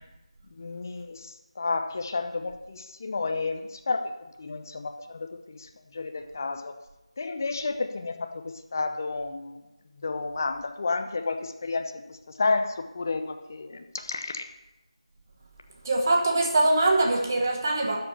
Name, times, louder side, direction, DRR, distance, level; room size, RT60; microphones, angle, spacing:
voice 1, 0.5-6.8 7.2-9.6 10.0-14.4, left 3 dB, 30° left, 6 dB, 0.9 m, -31 dB
voice 2, 15.8-18.0, right 2 dB, 30° right, 1 dB, 1.7 m, -23 dB
13.0 x 5.0 x 8.6 m, 0.99 s
figure-of-eight pair, 165°, 3 cm